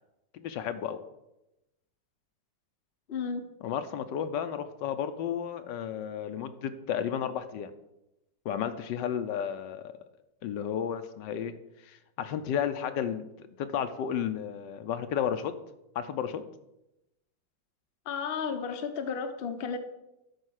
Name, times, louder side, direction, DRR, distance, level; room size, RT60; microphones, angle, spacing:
voice 1, 0.3-1.0 3.6-7.7 8.4-9.9 10.4-11.6 11.9-15.5 15.9-16.4, left 8 dB, 75° left, 10 dB, 1.3 m, -33 dB
voice 2, 3.1-3.5 18.1-19.8, left 6 dB, 45° left, 7 dB, 0.8 m, -33 dB
12.0 x 4.8 x 6.4 m, 0.91 s
omnidirectional pair, 2.0 m